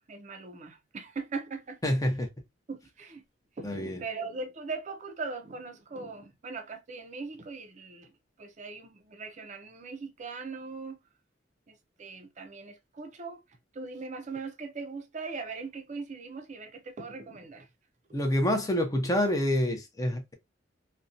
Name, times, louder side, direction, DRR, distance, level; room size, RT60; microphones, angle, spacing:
voice 1, 0.1-1.8 2.7-3.2 3.6-8.1 8.4-11.0 11.7-13.4 13.7-17.7, right 4 dB, 40° right, 0.4 m, -40 dB
voice 2, 1.8-2.3 3.6-4.0 18.1-20.3, left 1 dB, 20° left, 0.5 m, -27 dB
2.5 x 2.1 x 2.5 m
head